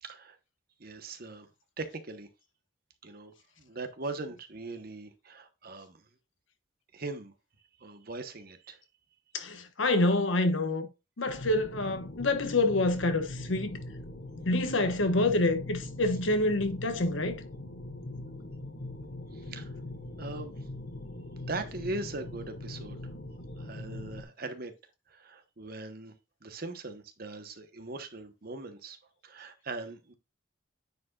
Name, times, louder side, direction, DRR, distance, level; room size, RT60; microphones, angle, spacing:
voice 1, 0.0-0.4 0.8-1.5 1.8-2.3 3.0-6.0 6.9-7.3 7.8-8.8 19.3-19.7 20.2-20.6 21.5-23.0 23.6-24.7 25.1-26.1 26.4-29.0 29.2-30.1, right 2 dB, 50° right, 1.0 m, -40 dB
voice 2, 9.3-10.9 11.2-13.8 14.4-17.4, left 2 dB, 80° left, 1.2 m, -27 dB
sound 1, 11.3-24.2, left 1 dB, 60° left, 1.2 m, -41 dB
9.3 x 4.9 x 2.4 m
head